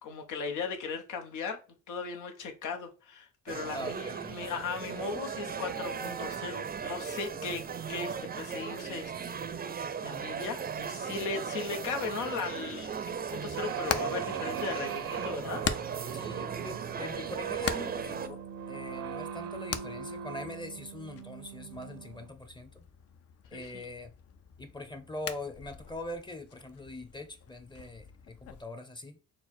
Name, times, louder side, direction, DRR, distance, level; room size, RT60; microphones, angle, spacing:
voice 1, 0.0-1.6 1.9-15.6 23.5-23.8, left 5 dB, 85° left, 0.9 m, -38 dB
sound 1, 3.5-18.3, right 6 dB, 30° right, 0.5 m, -37 dB
voice 2, 3.7-4.4 16.1-18.4 18.7-22.9 23.5-24.1 24.6-29.2, left 2 dB, 15° left, 0.7 m, -42 dB
Hammer, 13.4-28.6, left 8 dB, 55° left, 0.5 m, -42 dB
sound 2, 13.5-22.3, right 9 dB, 80° right, 0.7 m, -40 dB
4.4 x 2.1 x 4.2 m
cardioid pair, 90°, 30 cm